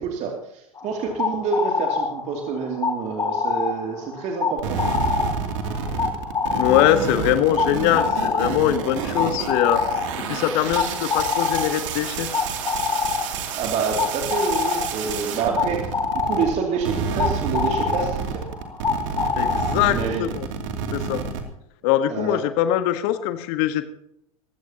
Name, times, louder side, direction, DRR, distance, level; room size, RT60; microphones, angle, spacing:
voice 1, 0.0-4.8 13.6-15.9 16.1-18.4 19.8-20.3 22.1-22.4, right 5 dB, 40° right, 1 dB, 2.5 m, -27 dB
sound 1, 0.8-20.2, left 5 dB, 20° left, 3.5 m, -27 dB
sound 2, 4.6-16.5 16.8-21.4, right 6 dB, 60° right, 2.6 m, -29 dB
voice 2, 6.5-9.8 10.3-12.3 19.3-20.5 20.9-21.2 21.8-23.8, left 12 dB, 50° left, 10 dB, 1.3 m, -22 dB
21.5 x 16.0 x 2.9 m, 0.78 s
figure-of-eight pair, 85°, 18 cm